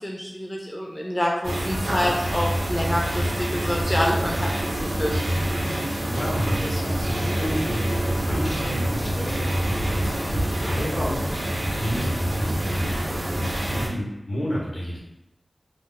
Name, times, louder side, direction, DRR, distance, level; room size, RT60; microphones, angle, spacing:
voice 1, 0.0-4.5 4.7-5.4, equal, 20° left, -2 dB, 0.4 m, -27 dB
sound 1, 1.4-13.9, right 1 dB, 65° right, 0.6 m, -26 dB
voice 2, 6.1-15.0, equal, 70° left, -4 dB, 0.9 m, -31 dB
2.4 x 2.0 x 3.8 m, 0.88 s
wide cardioid pair, 65°, 0 cm